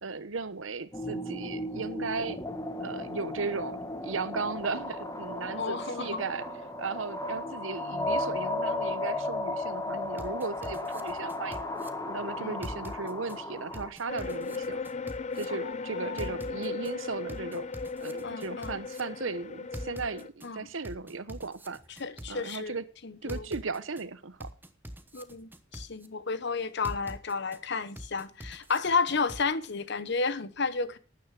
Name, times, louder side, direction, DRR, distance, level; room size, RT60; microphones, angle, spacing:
voice 1, 0.0-2.4 2.8-6.5 6.8-11.7 12.0-14.8 15.3-17.7 18.0-21.8 22.3-22.8 23.2-24.5, right 4 dB, 85° right, 1.0 m, -36 dB
sound 1, 0.9-13.9, left 2 dB, 15° left, 1.3 m, -35 dB
voice 2, 5.6-6.2 12.4-12.6 15.5-16.7 18.2-18.7 20.4-20.7 22.0-22.8 23.0-23.4 25.1-31.0, left 4 dB, 60° left, 1.0 m, -32 dB
sound 2, 10.2-11.9 12.6-13.4 13.7-15.4 16.2-16.9 17.3-19.0 19.7-20.5 20.8-22.6 23.3-24.0 24.4-26.1 26.8-27.6 28.0-29.4, equal, 10° right, 1.0 m, -43 dB
sound 3, 14.1-20.3, left 4 dB, 35° left, 0.6 m, -37 dB
12.5 x 9.4 x 5.0 m
head